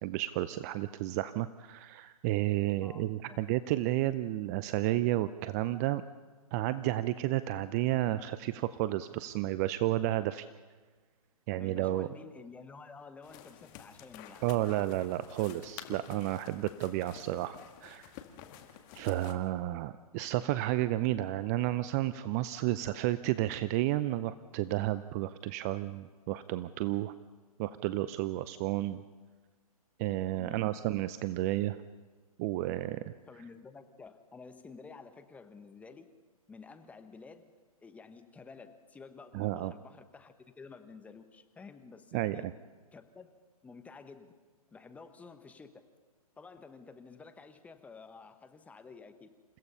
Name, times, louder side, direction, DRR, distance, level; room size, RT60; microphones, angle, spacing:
voice 1, 0.0-6.0 6.5-10.5 11.5-12.1 14.4-18.1 18.9-27.1 27.6-29.0 30.0-31.8 32.4-33.1 39.3-39.7 42.1-42.4, right 15 dB, 25° right, 14 dB, 0.5 m, -32 dB
voice 2, 2.8-3.4 11.6-14.4 30.4-30.7 33.3-36.1 36.5-37.5 37.8-42.4 42.9-43.3 43.6-44.3 44.7-45.8 46.4-49.3, left 4 dB, 5° left, 9 dB, 1.1 m, -51 dB
sound 1, 13.2-19.3, left 10 dB, 30° left, 1.7 m, -50 dB
28.5 x 16.5 x 5.6 m, 1.4 s
hypercardioid pair, 135°, 19 cm